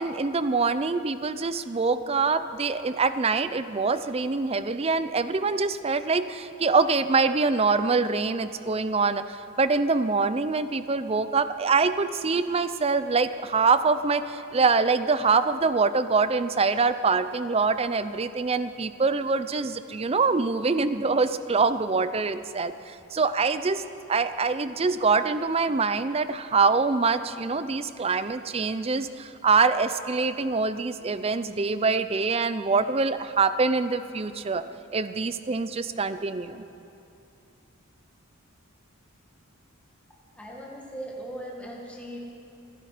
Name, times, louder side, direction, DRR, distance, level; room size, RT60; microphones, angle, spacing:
voice 1, 0.0-23.8 24.1-34.6 34.9-36.6, right 4 dB, 30° right, 12 dB, 0.5 m, -24 dB
voice 2, 40.4-42.2, right 1 dB, 5° left, -3 dB, 1.7 m, -38 dB
27.0 x 10.0 x 5.0 m, 2.7 s
head